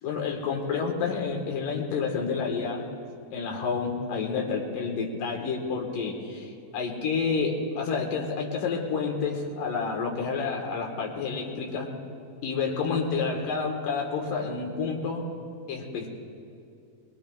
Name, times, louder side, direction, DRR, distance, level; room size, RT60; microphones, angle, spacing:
voice 1, 0.0-2.9 3.3-11.9 12.4-15.3 15.7-16.1, left 5 dB, 85° left, 1 dB, 3.2 m, -29 dB
22.0 x 21.0 x 2.4 m, 2.4 s
omnidirectional pair, 3.7 m